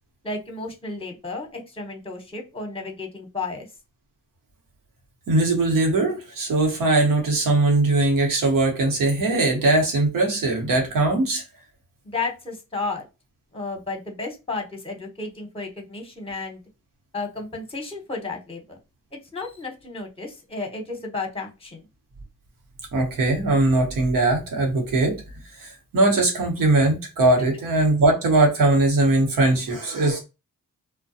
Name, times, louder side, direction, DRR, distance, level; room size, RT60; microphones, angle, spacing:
voice 1, 0.2-3.7 12.0-13.0 13.5-16.6 17.1-18.8 19.3-21.8 27.4-27.5, left 3 dB, 15° left, 0.8 m, -32 dB
voice 2, 5.3-11.4 22.9-25.2 25.6-30.2, right 2 dB, 80° right, 1.0 m, -20 dB
2.3 x 2.1 x 2.7 m
cardioid pair, 60°, 33 cm